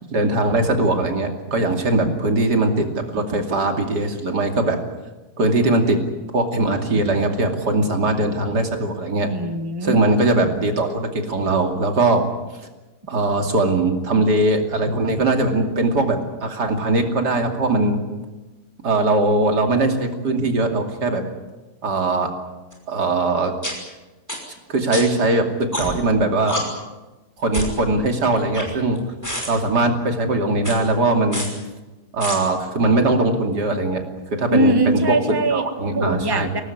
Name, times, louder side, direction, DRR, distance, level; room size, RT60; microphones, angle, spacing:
voice 1, 0.1-4.8 5.4-6.0 6.3-9.3 9.8-12.3 13.1-18.0 18.8-21.2 21.8-22.3 22.9-23.5 24.7-26.7 27.4-29.0 29.5-31.5 32.1-34.0 34.4-35.2 35.5-36.5, right 2 dB, 90° right, 4 dB, 3.3 m, -20 dB
voice 2, 9.3-10.0 34.5-35.6 35.9-36.6, right 1 dB, 15° right, 7 dB, 1.6 m, -21 dB
sound 1, 22.7-22.8 23.6-23.7 24.3-24.4 24.9-25.0 25.7-26.1 26.5-26.6 27.5-27.8 28.3-29.0 29.2-29.5 30.6-30.8 31.3-31.5 32.2-32.4, equal, 10° left, 5.7 m, -27 dB
23.5 x 18.5 x 9.5 m, 1.1 s
omnidirectional pair, 1.7 m